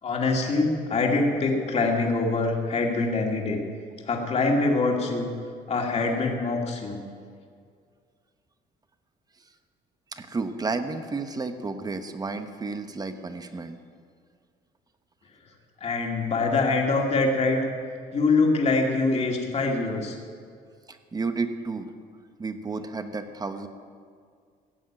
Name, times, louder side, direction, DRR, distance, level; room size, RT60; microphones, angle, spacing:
voice 1, 0.0-3.6 4.1-5.3 5.7-7.0 15.8-17.6 18.1-20.2, left 3 dB, 40° left, 0 dB, 2.5 m, -24 dB
voice 2, 10.1-13.8 20.9-21.9 22.4-23.7, right 3 dB, 20° right, 8 dB, 1.0 m, -32 dB
16.0 x 7.3 x 9.0 m, 2.1 s
cardioid pair, 110°, 17 cm